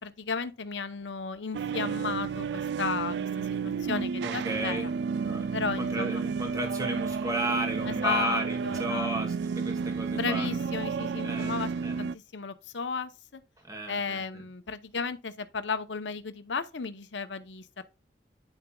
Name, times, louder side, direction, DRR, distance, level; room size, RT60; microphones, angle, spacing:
voice 1, 0.0-4.9 5.5-6.2 7.9-9.1 10.1-11.7 12.0-13.4 13.9-17.8, left 5 dB, 90° left, 0.8 m, -34 dB
sound 1, 1.5-12.1, right 5 dB, 75° right, 0.3 m, -31 dB
voice 2, 3.9-4.9 5.2-10.5 11.2-11.5 11.8-12.0 13.6-14.4, right 2 dB, 20° right, 2.0 m, -34 dB
10.0 x 6.8 x 2.3 m
head